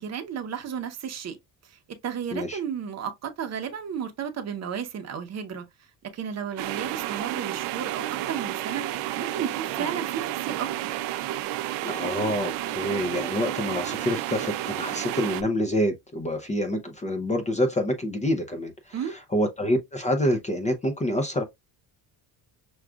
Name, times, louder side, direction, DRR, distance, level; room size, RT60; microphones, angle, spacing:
voice 1, 0.0-1.4 1.6-5.6 6.1-8.9 9.2-10.7 18.9-19.2, right 8 dB, 40° right, 0.8 m, -33 dB
sound 1, 6.6-15.4, right 14 dB, 85° right, 0.6 m, -31 dB
voice 2, 11.8-21.4, equal, 15° left, 0.5 m, -27 dB
6.2 x 2.4 x 2.3 m
cardioid pair, 135°, 41 cm